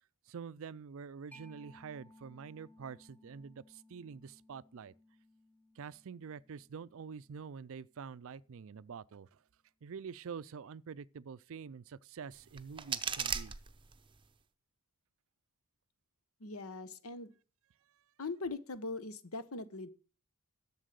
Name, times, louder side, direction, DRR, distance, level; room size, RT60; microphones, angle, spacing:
voice 1, 0.3-4.9 5.8-9.4 9.8-13.6, right 6 dB, 65° right, 0.4 m, -47 dB
Mallet percussion, 1.3-8.6, left 1 dB, 5° left, 1.1 m, -62 dB
sound 1, 12.3-14.3, right 7 dB, 20° right, 0.7 m, -39 dB
voice 2, 16.4-17.3 18.2-19.9, left 3 dB, 70° left, 1.1 m, -41 dB
11.5 x 7.3 x 6.6 m
head